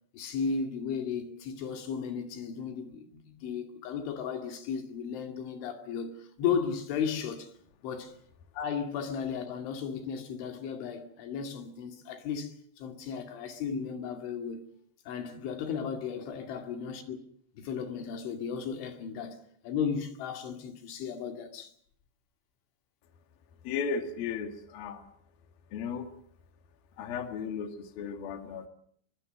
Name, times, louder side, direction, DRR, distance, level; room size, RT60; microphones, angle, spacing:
voice 1, 0.1-7.5 7.8-8.2 8.5-14.6 15.1-17.2 17.6-19.4 19.6-21.7, left 6 dB, 75° left, 4.7 m, -35 dB
voice 2, 23.6-25.1 25.7-26.1 27.0-28.7, left 6 dB, 55° left, 3.5 m, -35 dB
24.0 x 23.0 x 6.6 m
omnidirectional pair, 5.5 m